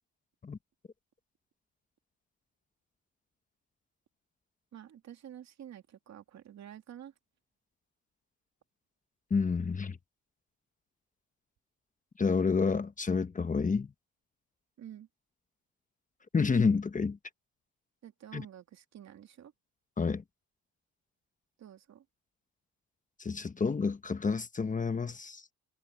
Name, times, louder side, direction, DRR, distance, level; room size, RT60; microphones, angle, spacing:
voice 1, 4.7-7.1 14.8-15.1 18.0-19.5 21.6-22.0, right 10 dB, 65° right, 2.7 m, -49 dB
voice 2, 9.3-10.0 12.2-13.9 16.3-17.2 18.3-18.4 20.0-20.2 23.2-25.4, left 5 dB, 25° left, 1.1 m, -29 dB
cardioid pair, 90°, 30 cm